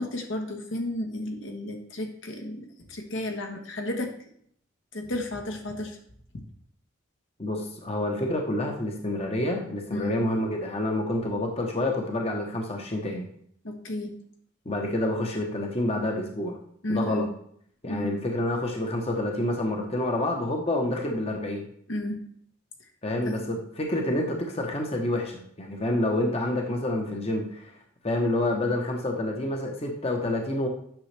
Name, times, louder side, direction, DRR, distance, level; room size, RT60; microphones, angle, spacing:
voice 1, 0.0-4.1 4.9-6.0 9.9-10.1 13.6-14.1 16.8-17.2 17.9-18.1 21.9-22.2 23.2-23.3, left 1 dB, 65° left, 3 dB, 1.2 m, -32 dB
voice 2, 7.4-13.2 14.6-16.6 16.9-17.3 17.8-21.7 23.0-27.7 28.0-30.7, left 1 dB, 30° left, 2 dB, 1.0 m, -28 dB
9.1 x 6.2 x 3.4 m, 0.65 s
head